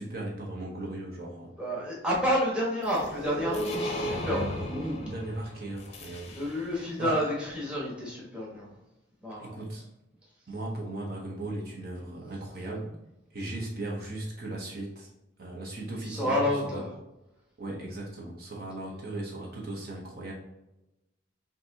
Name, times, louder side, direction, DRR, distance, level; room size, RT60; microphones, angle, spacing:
voice 1, 0.0-1.5 3.9-6.3 6.7-7.3 9.4-9.9 10.5-12.9 13.3-15.1 15.4-16.8 17.6-20.3, right 1 dB, 50° right, -2 dB, 0.9 m, -37 dB
voice 2, 1.6-4.6 6.3-8.7 9.2-9.5 16.1-16.9, equal, 5° right, -6 dB, 1.2 m, -29 dB
sound 1, 2.8-6.9, left 1 dB, 35° left, 0.6 m, -36 dB
5.9 x 2.7 x 2.8 m, 0.95 s
head